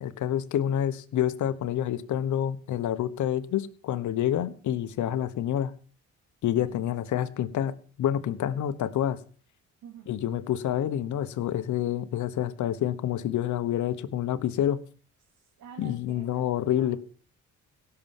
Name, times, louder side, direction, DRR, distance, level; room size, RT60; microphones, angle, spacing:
voice 1, 0.0-5.7 6.4-7.7 8.0-9.2 10.1-14.8 15.8-17.0, left 11 dB, 75° left, 1.2 m, -28 dB
voice 2, 9.8-10.1 15.3-17.0, right 8 dB, 75° right, 2.9 m, -49 dB
16.5 x 7.0 x 7.2 m
cardioid pair, 90°, 30 cm